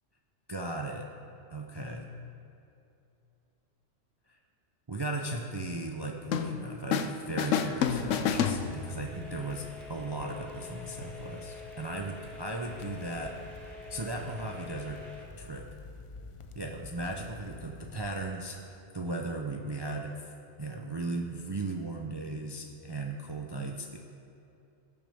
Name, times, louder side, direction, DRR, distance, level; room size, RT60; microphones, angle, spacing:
voice 1, 0.5-1.1 1.5-2.1 4.3-4.4 4.9-13.4 13.9-15.0 15.4-15.7 16.5-20.2 20.6-24.0, right 2 dB, 35° right, 2 dB, 0.4 m, -37 dB
sound 1, 6.3-7.1 7.4-9.1, left 7 dB, 80° left, 1.0 m, -29 dB
sound 2, 7.6-15.3, left 4 dB, ahead, 1.7 m, -47 dB
sound 3, 7.7-18.1, left 3 dB, 55° left, 0.3 m, -49 dB
18.5 x 7.0 x 3.5 m, 2.7 s
omnidirectional pair, 1.3 m